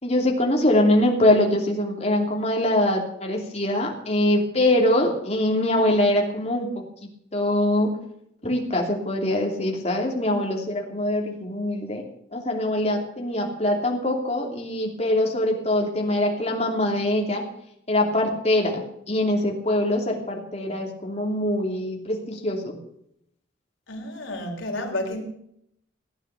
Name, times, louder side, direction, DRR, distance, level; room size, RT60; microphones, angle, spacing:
voice 1, 0.0-6.7 7.3-7.9 8.4-12.0 12.3-17.4 17.9-22.8, left 1 dB, 35° left, 1 dB, 2.9 m, -23 dB
voice 2, 23.9-25.2, left 1 dB, 90° left, 2 dB, 3.7 m, -30 dB
16.5 x 9.8 x 7.0 m, 0.74 s
head